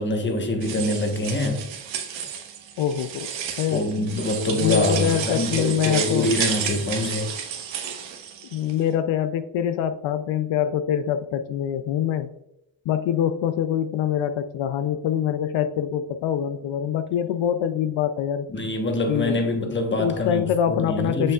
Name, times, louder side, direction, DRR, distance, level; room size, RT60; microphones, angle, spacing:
voice 1, 0.0-1.6 3.7-7.3 18.5-20.4 20.7-21.3, left 1 dB, 25° left, 1.1 m, -25 dB
sound 1, 0.6-8.7, right 8 dB, 85° right, 1.2 m, -31 dB
voice 2, 2.8-3.3 3.6-3.9 4.6-6.4 8.5-12.3 12.9-18.5 19.1-19.4 20.0-21.3, left 9 dB, 85° left, 0.5 m, -24 dB
6.7 x 6.4 x 2.3 m
cardioid pair, 100°, 45 cm